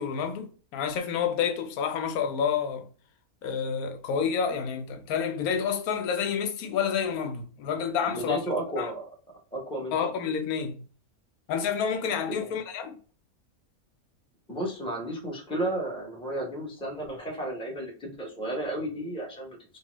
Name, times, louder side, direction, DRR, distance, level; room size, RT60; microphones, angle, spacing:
voice 1, 0.0-2.8 3.4-8.4 8.8-8.9 9.9-10.8 11.5-13.0, left 7 dB, 80° left, 1.1 m, -29 dB
voice 2, 8.1-9.0 9.5-10.0 12.3-12.5 14.5-19.8, right 1 dB, 5° left, 0.8 m, -33 dB
3.0 x 2.3 x 3.0 m
omnidirectional pair, 1.5 m